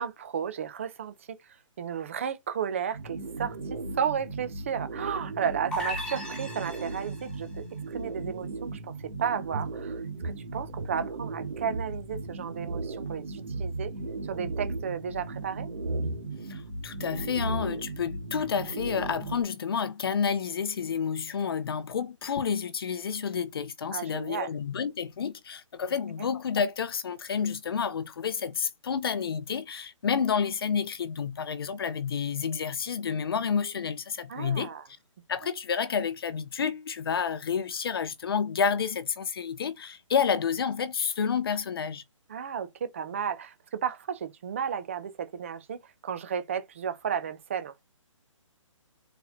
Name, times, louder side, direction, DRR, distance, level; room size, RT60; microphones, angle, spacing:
voice 1, 0.0-1.4 1.8-13.9 14.3-15.7 23.9-24.5 34.3-34.8 42.3-47.8, right 7 dB, 25° right, 0.5 m, -33 dB
sound 1, 2.9-19.4, right 3 dB, 80° right, 1.9 m, -37 dB
sound 2, 5.7-7.3, equal, 5° left, 1.0 m, -36 dB
sound 3, 9.5-12.0 12.2-12.3 12.6-12.9 13.5-13.9 14.3-14.8 15.8-16.2 17.0-17.1 17.3-18.0, right 2 dB, 60° right, 0.9 m, -34 dB
voice 2, 16.5-34.7 35.3-42.0, left 6 dB, 45° left, 0.6 m, -30 dB
4.2 x 2.7 x 4.1 m
hypercardioid pair, 165°, 17 cm